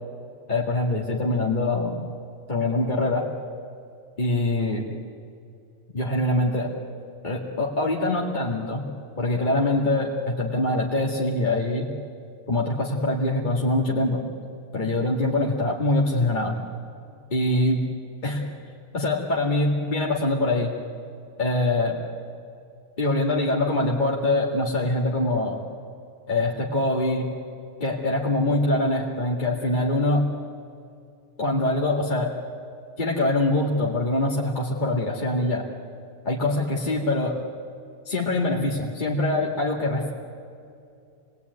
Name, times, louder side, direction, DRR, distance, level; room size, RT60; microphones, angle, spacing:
voice 1, 0.5-2.0 2.5-3.3 4.2-4.9 5.9-6.7 7.2-8.9 9.2-11.9 12.5-14.2 14.7-16.6 17.3-17.8 18.2-18.4 18.9-20.7 21.4-22.0 23.0-25.6 26.3-27.3 27.8-30.2 31.4-32.3 33.0-35.6 36.3-37.4 38.1-40.1, left 2 dB, 35° left, -3 dB, 2.3 m, -24 dB
27.0 x 20.5 x 9.5 m, 2.5 s
omnidirectional pair, 1.3 m